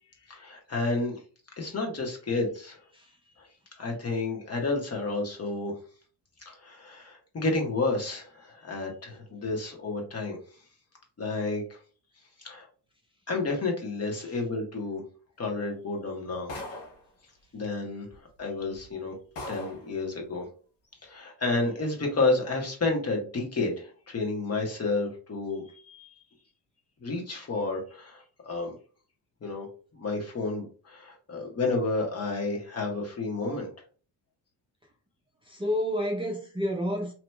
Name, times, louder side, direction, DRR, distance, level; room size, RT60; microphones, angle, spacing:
voice 1, 0.3-1.2 1.6-2.8 3.4-3.5 3.8-5.7 6.4-10.4 11.2-11.8 12.4-12.7 13.3-15.0 15.4-16.5 17.5-19.1 19.5-20.5 21.0-26.1 27.0-28.7 29.4-29.7 29.9-33.7, left 3 dB, 35° left, 1.3 m, -31 dB
sound 1, 16.5-17.1 18.1-18.2 18.7-18.9 19.4-19.9, left 2 dB, 80° left, 1.4 m, -39 dB
voice 2, 35.5-37.1, equal, 10° right, 0.6 m, -30 dB
3.0 x 2.8 x 2.2 m
supercardioid pair, 80°, 44 cm